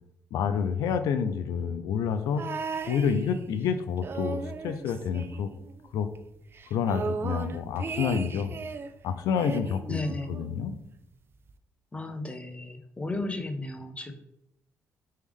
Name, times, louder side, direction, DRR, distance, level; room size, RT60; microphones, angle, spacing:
voice 1, 0.3-2.4 2.9-5.5 5.9-6.1 6.7-8.5 9.0-10.0 10.3-10.8, left 7 dB, 80° left, 10 dB, 0.4 m, -28 dB
sound 1, 2.4-3.7 4.0-5.9 6.2-6.3 6.5-8.9 9.4-10.6 11.5-11.6, right 5 dB, 40° right, 0.3 m, -36 dB
voice 2, 9.9-10.3 11.9-14.1, left 2 dB, 20° left, 6 dB, 0.7 m, -34 dB
3.4 x 3.2 x 3.4 m, 0.79 s
cardioid pair, 70°, 6 cm